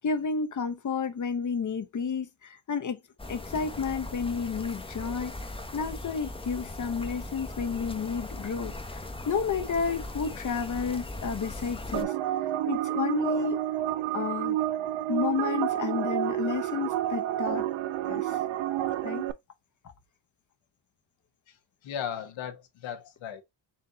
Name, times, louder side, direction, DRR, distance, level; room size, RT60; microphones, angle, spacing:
voice 1, 0.0-3.0 3.3-5.3 5.7-9.0 9.3-12.1 12.7-13.6 14.1-14.6 15.1-17.7 18.0-18.4 19.0-19.3, left 5 dB, 40° left, 0.8 m, -31 dB
sound 1, 3.2-12.0, left 2 dB, 10° left, 0.8 m, -39 dB
sound 2, 11.9-19.3, right 13 dB, 80° right, 0.6 m, -29 dB
voice 2, 21.8-23.4, left 8 dB, 75° left, 1.1 m, -36 dB
4.3 x 2.6 x 3.8 m
cardioid pair, 80°, 46 cm